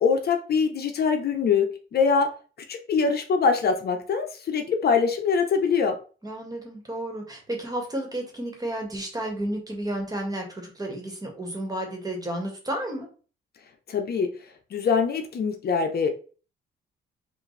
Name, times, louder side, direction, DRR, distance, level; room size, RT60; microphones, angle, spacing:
voice 1, 0.0-2.3 2.7-6.0 13.9-14.3 14.7-16.1, left 5 dB, 50° left, 5 dB, 0.7 m, -23 dB
voice 2, 6.2-13.1, right 1 dB, 20° right, 2 dB, 1.6 m, -32 dB
5.1 x 2.6 x 3.3 m, 0.38 s
cardioid pair, 90°, 20 cm